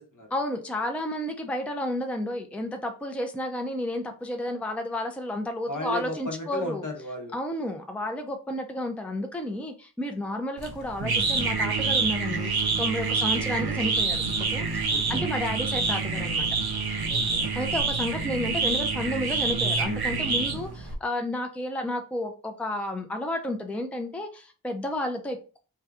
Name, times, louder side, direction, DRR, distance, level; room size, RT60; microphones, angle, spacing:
voice 1, 0.3-6.9 7.3-16.5 17.5-25.6, left 1 dB, 5° left, 4 dB, 0.5 m, -32 dB
voice 2, 5.7-7.4 13.1-13.5 14.9-15.3 17.1-17.5, left 1 dB, 55° left, 3 dB, 0.9 m, -36 dB
sound 1, 10.6-20.9, right 4 dB, 75° right, 0.7 m, -27 dB
2.8 x 2.3 x 3.4 m, 0.35 s
cardioid pair, 40°, 37 cm